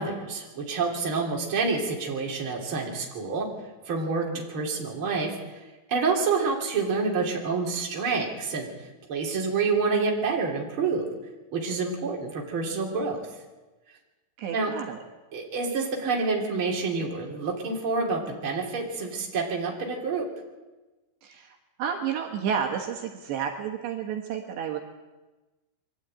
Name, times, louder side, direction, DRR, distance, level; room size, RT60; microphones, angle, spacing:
voice 1, 0.0-3.5 3.9-5.6 5.9-8.7 9.1-11.1 11.5-13.3 14.5-14.7 15.3-20.3, right 4 dB, 30° right, -1 dB, 3.4 m, -28 dB
voice 2, 14.4-15.0 21.2-24.8, right 7 dB, 75° right, 2 dB, 3.5 m, -31 dB
23.0 x 13.0 x 9.0 m, 1.2 s
omnidirectional pair, 5.3 m